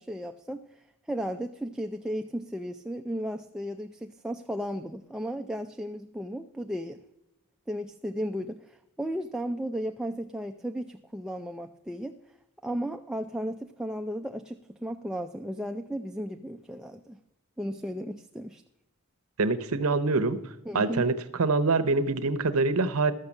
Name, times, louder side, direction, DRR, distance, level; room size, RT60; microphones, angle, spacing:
voice 1, 0.0-7.0 7.7-12.2 12.6-17.2 17.6-18.6 20.7-21.1, equal, 5° right, 5 dB, 0.3 m, -35 dB
voice 2, 19.4-20.4 20.7-21.1 21.4-23.1, right 3 dB, 65° right, 12 dB, 0.8 m, -24 dB
13.0 x 6.6 x 7.1 m, 0.90 s
head